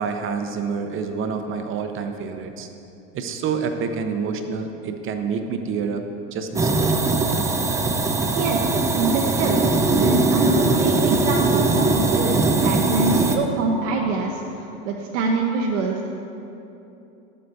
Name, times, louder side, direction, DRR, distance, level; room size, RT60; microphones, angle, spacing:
voice 1, 0.0-2.7 3.1-6.0 6.3-7.1, right 5 dB, 35° right, 6 dB, 0.8 m, -28 dB
sound 1, 6.6-13.4, right 3 dB, 10° right, 0.4 m, -20 dB
voice 2, 8.4-9.7 10.0-16.1, right 3 dB, 75° right, 0 dB, 0.9 m, -25 dB
12.0 x 7.8 x 2.7 m, 2.9 s
hypercardioid pair, 95°, 37 cm